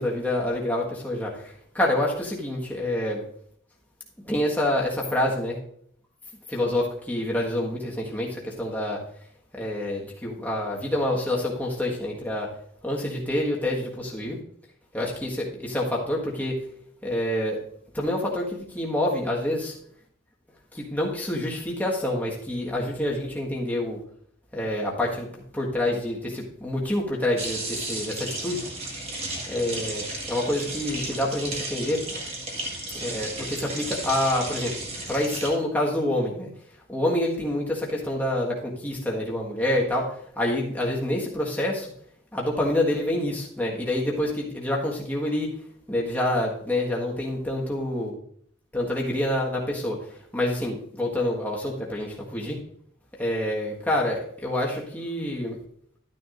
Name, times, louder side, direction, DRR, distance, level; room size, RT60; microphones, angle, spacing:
voice 1, 0.0-3.2 4.2-5.6 6.5-9.0 9.5-12.5 12.8-14.4 14.9-16.6 17.0-17.6 17.9-19.7 20.7-24.0 24.5-25.3 25.5-28.6 29.5-32.0 33.0-34.7 35.1-36.5 36.9-41.9 42.3-45.5 45.9-48.2 48.7-50.0 50.3-52.6 53.2-55.6, left 1 dB, 10° left, -3 dB, 1.6 m, -27 dB
sound 1, 27.4-35.5, right 2 dB, 30° right, 1.8 m, -34 dB
12.5 x 9.4 x 2.6 m, 0.63 s
head